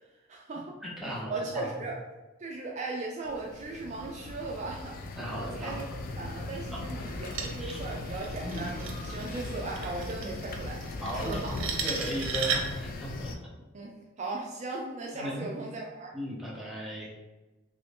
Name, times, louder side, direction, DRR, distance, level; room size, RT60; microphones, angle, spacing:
voice 1, 0.3-0.8 1.3-2.0 2.4-5.1 5.4-5.9 6.2-10.8 11.2-11.6 13.7-16.1, right 3 dB, 35° right, -1 dB, 0.3 m, -37 dB
voice 2, 0.8-1.7 5.2-6.0 6.7-6.9 7.6-7.8 8.4-8.7 11.0-11.4 11.8-13.5 15.1-15.5 16.1-17.1, equal, ahead, -6 dB, 0.7 m, -36 dB
sound 1, 3.2-13.4, left 2 dB, 45° left, 0.3 m, -39 dB
sound 2, 7.1-12.9, right 5 dB, 85° right, 0.6 m, -36 dB
3.0 x 2.6 x 3.4 m, 1.1 s
head